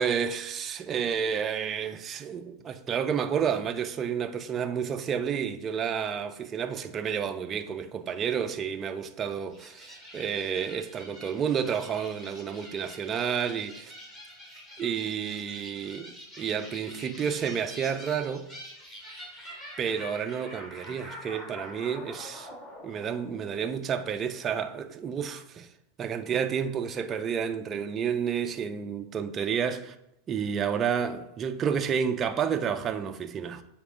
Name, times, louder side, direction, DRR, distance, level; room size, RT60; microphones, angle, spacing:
voice 1, 0.0-13.9 14.8-18.5 19.8-22.5 22.8-25.7 26.0-29.9 30.3-33.6, right 7 dB, 20° right, 0.3 m, -30 dB
sound 1, 9.5-24.2, equal, 20° left, 1.5 m, -46 dB
7.3 x 4.2 x 3.6 m
supercardioid pair, 165°, 0 cm